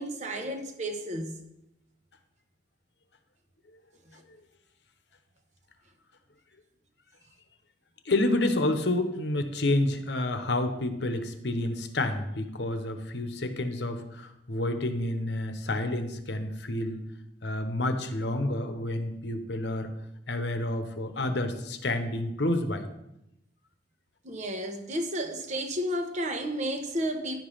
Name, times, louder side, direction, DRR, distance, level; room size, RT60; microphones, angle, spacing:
voice 1, 0.0-1.4 24.2-27.4, equal, 45° right, 1.0 m, -32 dB
voice 2, 8.0-17.0 17.4-19.9 20.3-22.8, left 1 dB, 75° left, 1.0 m, -29 dB
11.0 x 5.2 x 5.6 m
head